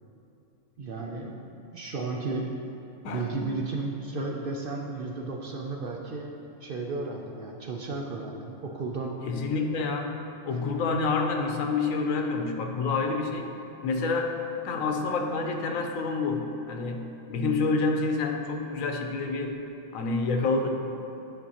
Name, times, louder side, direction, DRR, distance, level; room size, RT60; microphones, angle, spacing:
voice 1, 0.8-2.5 3.1-6.3 6.6-9.1, right 3 dB, 60° right, 0 dB, 0.6 m, -34 dB
voice 2, 3.0-3.4 9.2-13.6 13.8-14.4 14.6-19.6 19.9-20.7, left 3 dB, 85° left, 4 dB, 1.1 m, -28 dB
10.5 x 5.2 x 2.8 m, 2.8 s
omnidirectional pair, 1.4 m